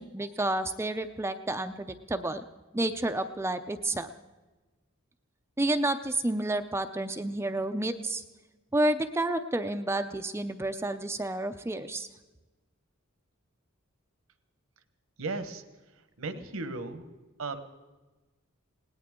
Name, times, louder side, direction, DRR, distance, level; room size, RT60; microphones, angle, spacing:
voice 1, 0.0-2.4 2.7-4.1 5.6-8.2 8.7-12.1, right 1 dB, 10° right, 8 dB, 0.5 m, -30 dB
voice 2, 15.2-15.6 16.2-17.0 17.4-17.6, right 3 dB, 75° right, 10 dB, 1.2 m, -35 dB
20.5 x 18.0 x 3.7 m, 1.2 s
head